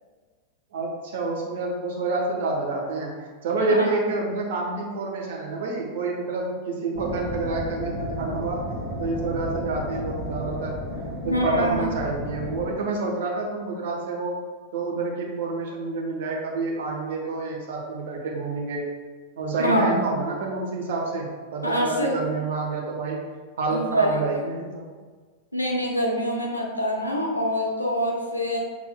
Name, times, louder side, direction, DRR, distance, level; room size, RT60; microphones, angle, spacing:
voice 1, 0.7-8.6 9.0-10.8 11.2-14.4 14.7-18.8 19.4-23.2 23.6-24.9, right 3 dB, 55° right, -1 dB, 1.0 m, -28 dB
sound 1, 7.0-12.7, left 1 dB, 15° left, 1.1 m, -33 dB
voice 2, 11.2-11.9 19.6-20.2 21.6-22.2 23.7-24.1 25.5-28.6, equal, 85° left, 0 dB, 0.7 m, -25 dB
6.1 x 3.8 x 2.2 m, 1.5 s
figure-of-eight pair, 90°, 0 cm